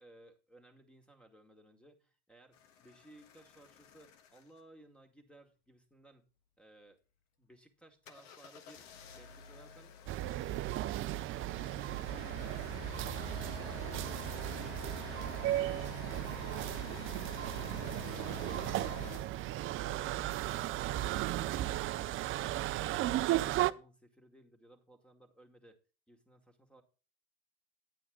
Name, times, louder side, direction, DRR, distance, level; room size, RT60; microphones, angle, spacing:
voice 1, 0.0-6.3 6.6-7.0 7.4-10.0 22.8-25.8 26.1-26.8, right 1 dB, 5° left, 5 dB, 2.2 m, -61 dB
sound 1, 2.5-4.6 8.1-19.2, left 9 dB, 70° left, 1.4 m, -49 dB
sound 2, 10.1-23.7, right 15 dB, 40° right, 0.5 m, -35 dB
9.6 x 9.1 x 3.8 m, 0.37 s
hypercardioid pair, 75°, 32 cm